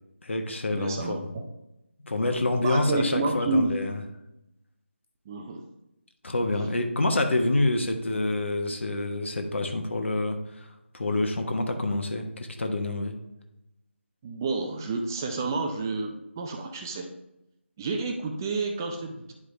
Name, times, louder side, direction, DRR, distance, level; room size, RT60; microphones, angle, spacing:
voice 1, 0.2-1.3 2.0-4.0 6.2-10.7 10.9-13.1, left 2 dB, 65° left, 5 dB, 1.2 m, -27 dB
voice 2, 0.7-1.5 2.2-3.7 5.3-5.6 14.2-17.1 17.8-19.3, right 3 dB, 15° right, 3 dB, 0.5 m, -30 dB
9.8 x 5.0 x 3.3 m, 0.88 s
figure-of-eight pair, 165°, 7 cm